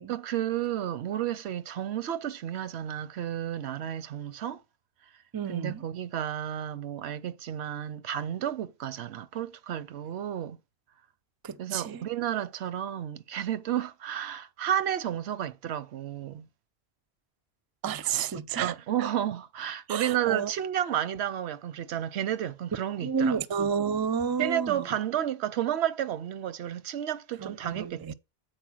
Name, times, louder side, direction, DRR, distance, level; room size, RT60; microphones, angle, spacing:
voice 1, 0.1-4.6 5.5-10.6 11.6-16.5 18.6-23.4 24.4-28.1, right 10 dB, 85° right, 0.9 m, -32 dB
voice 2, 5.3-5.8 11.4-12.1 17.8-18.7 19.0-19.1 19.9-20.5 23.0-24.9 27.4-28.1, right 7 dB, 35° right, 0.4 m, -30 dB
8.9 x 4.4 x 6.1 m
omnidirectional pair, 1.1 m